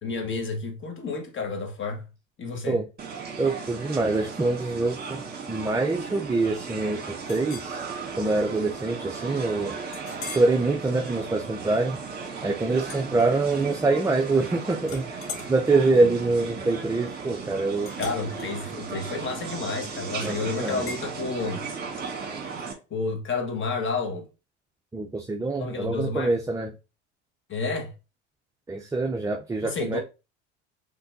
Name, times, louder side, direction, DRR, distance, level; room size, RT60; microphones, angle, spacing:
voice 1, 0.0-2.0 2.4-2.8 12.9-13.0 16.0-16.1 18.0-21.6 22.9-24.3 25.6-26.3 27.5-27.9 29.6-30.0, left 4 dB, 35° left, 1.5 m, -30 dB
sound 1, 3.0-22.7, right 5 dB, 30° right, 1.6 m, -36 dB
voice 2, 3.4-5.2 5.5-7.8 8.2-9.7 10.3-12.0 12.4-17.9 20.2-20.9 24.9-26.7 28.7-30.0, right 3 dB, 10° right, 0.6 m, -25 dB
Chink clink, 7.3-7.7 8.3-8.4 8.9-9.0 9.9-10.6 11.1-11.4 12.8-13.8 14.1-14.5 14.8-19.9 20.9-21.1, left 4 dB, 70° left, 2.3 m, -42 dB
5.8 x 3.4 x 2.6 m
hypercardioid pair, 70°, 34 cm